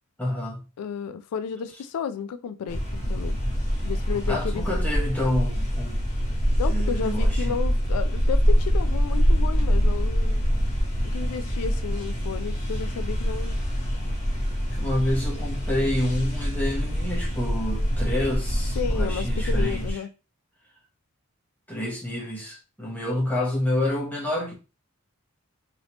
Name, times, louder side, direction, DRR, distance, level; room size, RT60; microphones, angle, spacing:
voice 1, 0.2-0.7 4.3-6.1 6.7-7.6 14.7-20.0 21.7-24.5, left 1 dB, 5° left, 0.9 m, -28 dB
voice 2, 0.8-3.4 3.8-4.6 6.6-10.5 11.0-13.6 18.8-20.1, left 7 dB, 85° left, 0.3 m, -32 dB
sound 1, 2.7-19.9, equal, 30° left, 1.0 m, -25 dB
3.2 x 2.7 x 2.9 m
head